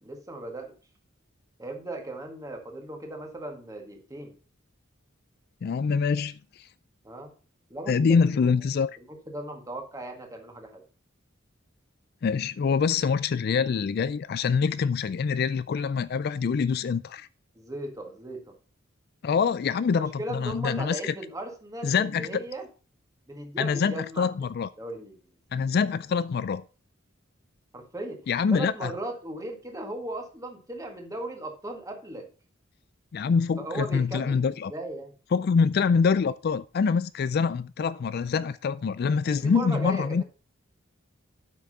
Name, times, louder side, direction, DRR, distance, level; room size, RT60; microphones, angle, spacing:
voice 1, 0.0-0.7 1.6-4.3 7.0-7.3 7.7-8.5 9.1-10.8 17.6-18.5 20.0-22.7 23.3-24.3 24.8-25.2 27.7-28.2 28.5-32.3 33.6-35.1 39.2-40.2, right 1 dB, 15° right, 1.8 m, -37 dB
voice 2, 5.6-6.4 7.9-8.9 12.2-17.3 19.2-21.1 21.8-22.4 23.6-24.7 25.5-26.6 28.3-28.9 33.1-34.7 35.3-40.2, left 5 dB, 50° left, 0.3 m, -25 dB
8.4 x 6.1 x 5.4 m
head